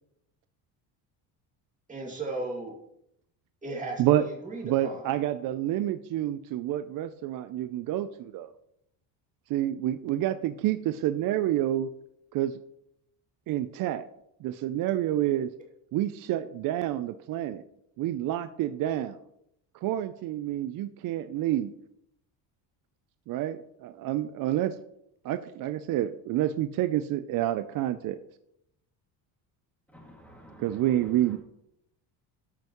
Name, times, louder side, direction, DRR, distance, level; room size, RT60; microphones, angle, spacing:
voice 1, 1.9-2.7 3.6-5.0, right 2 dB, 15° right, -2 dB, 2.2 m, -36 dB
voice 2, 4.6-8.5 9.5-11.9 12.3-12.6 13.5-14.1 14.4-15.5 15.9-17.6 18.0-19.2 19.8-21.7 23.3-24.8 25.2-28.2 30.6-31.4, right 13 dB, 50° right, 11 dB, 0.4 m, -28 dB
voice 3, 29.9-31.4, equal, 5° left, -1 dB, 2.1 m, -51 dB
13.0 x 5.7 x 3.0 m, 0.78 s
cardioid pair, 120°, 45 cm